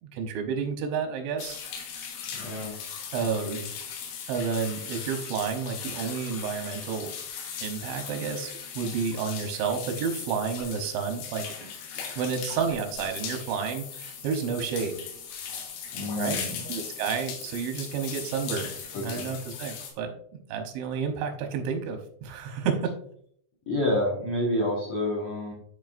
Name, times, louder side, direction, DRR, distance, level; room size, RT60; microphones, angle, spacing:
voice 1, 0.0-1.6 3.1-3.6 4.3-7.1 7.6-11.7 12.2-15.0 16.2-16.4 16.7-18.7 19.0-20.1 20.5-22.9, right 6 dB, 90° right, 5 dB, 3.3 m, -30 dB
sound 1, 1.4-19.9, left 7 dB, 90° left, 3.6 m, -38 dB
voice 2, 2.3-2.7 3.4-3.6 15.9-16.6 18.9-19.3 23.7-25.5, left 1 dB, 70° left, -4 dB, 1.4 m, -29 dB
12.0 x 4.6 x 2.5 m, 0.66 s
omnidirectional pair, 5.1 m